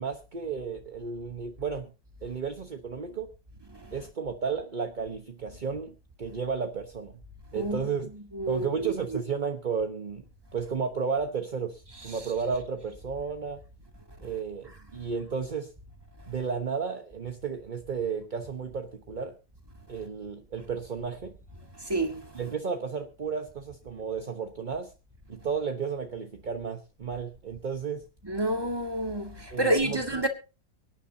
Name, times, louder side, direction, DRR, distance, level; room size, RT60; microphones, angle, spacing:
voice 1, 0.0-1.9 2.2-3.3 3.9-7.2 7.5-8.1 8.5-10.2 10.5-13.6 14.2-15.7 16.3-19.4 19.9-21.3 22.3-24.9 25.3-28.0 29.5-30.0, right 5 dB, 35° right, 0.9 m, -33 dB
voice 2, 8.3-8.9 21.8-22.2 28.2-30.3, right 1 dB, 15° right, 1.8 m, -28 dB
24.0 x 10.0 x 2.7 m
omnidirectional pair, 1.9 m